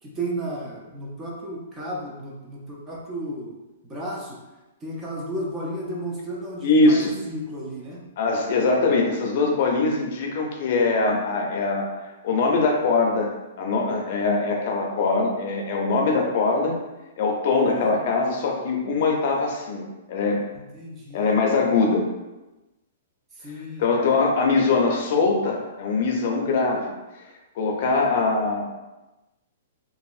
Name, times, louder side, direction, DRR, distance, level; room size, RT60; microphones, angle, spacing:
voice 1, 0.0-3.5 3.9-4.4 4.8-8.0 17.5-18.0 20.5-21.3 23.4-23.9, right 1 dB, 15° right, -3 dB, 0.5 m, -33 dB
voice 2, 6.6-7.1 8.2-11.9 12.2-13.3 13.6-16.8 17.2-20.4 21.1-22.1 23.8-26.9 27.6-28.6, left 3 dB, 50° left, 0 dB, 0.5 m, -22 dB
2.9 x 2.7 x 2.4 m, 1.1 s
hypercardioid pair, 160°, 0 cm